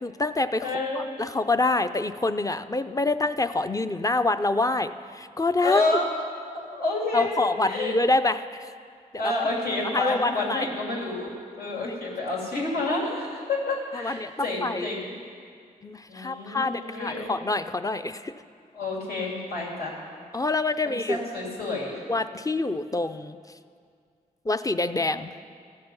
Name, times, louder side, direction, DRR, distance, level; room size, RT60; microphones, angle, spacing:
voice 1, 0.0-0.7 0.9-5.8 7.1-8.7 9.2-9.3 9.9-10.7 13.9-14.9 15.8-18.3 20.3-21.2 22.1-23.4 24.5-25.3, left 2 dB, 20° left, 10 dB, 0.5 m, -26 dB
voice 2, 0.6-1.1 5.6-6.1 6.5-8.0 9.2-15.1 16.1-17.3 18.7-20.0 21.1-22.0, left 2 dB, 90° left, -4 dB, 3.0 m, -29 dB
15.0 x 6.7 x 5.4 m, 2.2 s
cardioid pair, 65°, 15 cm